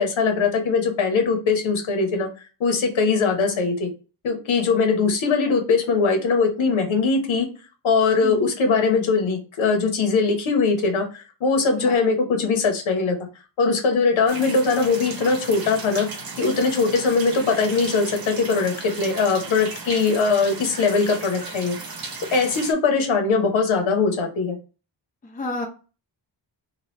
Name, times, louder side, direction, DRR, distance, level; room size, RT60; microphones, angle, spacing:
voice 1, 0.0-2.3 2.6-3.9 4.2-7.5 7.8-13.2 13.6-16.1 16.4-21.8 22.3-24.6, left 4 dB, 85° left, 4 dB, 1.0 m, -21 dB
sound 1, 14.3-22.7, right 3 dB, 50° right, 0.9 m, -36 dB
voice 2, 25.3-25.7, left 2 dB, 20° left, 2 dB, 0.6 m, -30 dB
2.9 x 2.3 x 3.1 m, 0.34 s
wide cardioid pair, 145°, 46 cm